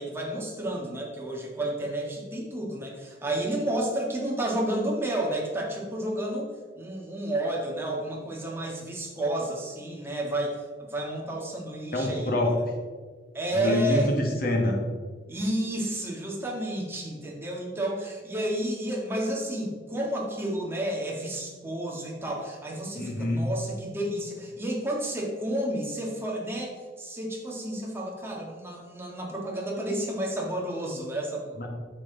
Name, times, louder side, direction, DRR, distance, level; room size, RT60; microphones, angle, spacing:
voice 1, 0.0-12.3 13.3-14.1 15.3-31.7, right 1 dB, 10° right, -2 dB, 1.6 m, -31 dB
voice 2, 11.9-12.5 13.5-14.9 22.9-23.5 31.6-31.7, left 1 dB, 50° left, 1 dB, 1.6 m, -26 dB
9.3 x 6.7 x 3.9 m, 1.5 s
head